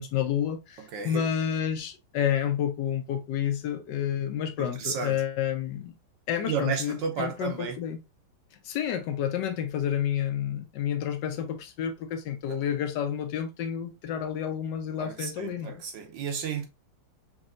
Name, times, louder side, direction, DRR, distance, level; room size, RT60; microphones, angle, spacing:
voice 1, 0.0-5.9 6.3-8.0 8.6-15.8, left 9 dB, 75° left, 1.0 m, -30 dB
voice 2, 0.8-1.3 4.6-5.2 6.5-7.8 12.5-12.6 15.0-16.6, right 6 dB, 70° right, 1.2 m, -33 dB
5.4 x 2.8 x 2.4 m
omnidirectional pair, 2.4 m